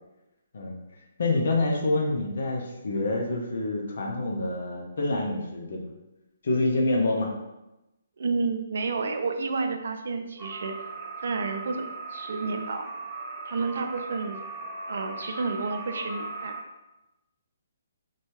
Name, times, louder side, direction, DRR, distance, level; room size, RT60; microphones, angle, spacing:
voice 1, 1.2-5.8 6.4-7.3, left 2 dB, 65° left, 0 dB, 0.6 m, -27 dB
voice 2, 8.2-10.7 11.2-12.9 13.5-14.4 14.9-16.6, right 4 dB, 70° right, 6 dB, 0.4 m, -30 dB
sound 1, 10.4-16.6, right 3 dB, 10° right, 0.5 m, -38 dB
2.6 x 2.3 x 3.1 m, 0.96 s
hypercardioid pair, 145°, 0 cm